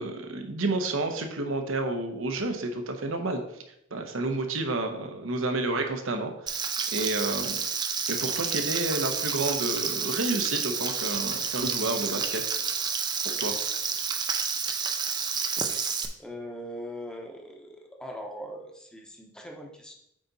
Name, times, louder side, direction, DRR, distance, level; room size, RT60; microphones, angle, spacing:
voice 1, 0.0-3.4 3.9-7.6 8.1-12.4 13.2-13.5, right 2 dB, 80° right, 5 dB, 1.0 m, -30 dB
Frying (food), 6.5-16.1, right 6 dB, 20° right, 0.5 m, -30 dB
voice 2, 16.2-19.9, equal, 5° left, 1 dB, 1.0 m, -40 dB
8.5 x 4.1 x 4.1 m, 0.78 s
head